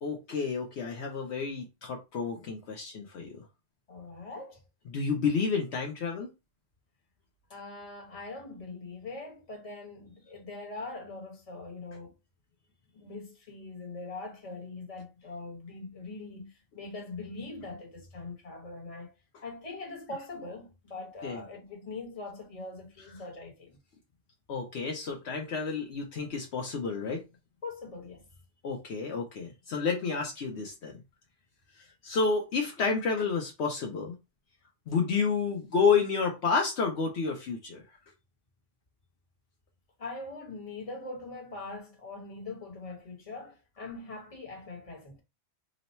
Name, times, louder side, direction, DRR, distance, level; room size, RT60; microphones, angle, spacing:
voice 1, 0.0-3.5 4.9-6.3 21.2-21.4 24.5-27.2 28.6-31.0 31.8-34.1 34.9-37.8, left 5 dB, 70° left, 0.9 m, -30 dB
voice 2, 3.9-4.6 7.5-12.1 12.9-19.1 19.4-23.8 27.6-28.3 40.0-45.2, left 3 dB, 30° left, 1.0 m, -42 dB
3.0 x 2.0 x 4.1 m
omnidirectional pair, 1.2 m